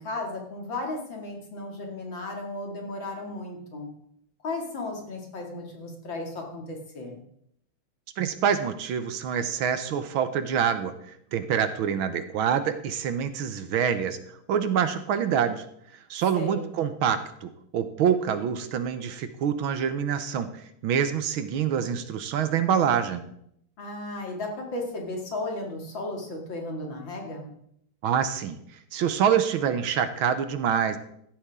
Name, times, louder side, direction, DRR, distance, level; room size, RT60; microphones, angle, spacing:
voice 1, 0.0-3.9 4.4-7.2 16.3-16.7 23.8-27.5, left 2 dB, 60° left, 1 dB, 3.2 m, -35 dB
voice 2, 8.2-10.9 11.3-14.2 14.5-15.6 16.1-20.5 20.8-23.3 28.0-28.6 28.9-31.0, right 8 dB, 70° right, 10 dB, 1.7 m, -26 dB
16.0 x 12.5 x 3.7 m, 0.71 s
omnidirectional pair, 2.4 m